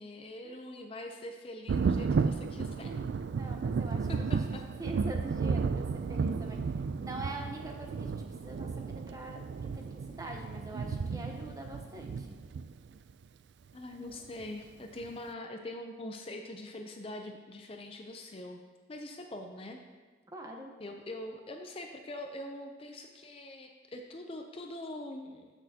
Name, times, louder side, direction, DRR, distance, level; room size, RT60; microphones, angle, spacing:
voice 1, 0.0-2.9 4.1-4.6 13.7-18.6 18.9-19.8 20.8-25.5, left 1 dB, 30° left, 4 dB, 0.5 m, -43 dB
Thunder, 1.7-13.1 14.4-14.5 15.0-15.1, right 5 dB, 65° right, 0.3 m, -33 dB
voice 2, 2.9-6.6 7.0-9.4 9.7-12.3 20.3-20.7, right 1 dB, 20° right, 2 dB, 0.9 m, -44 dB
12.5 x 6.2 x 2.8 m, 1.4 s
head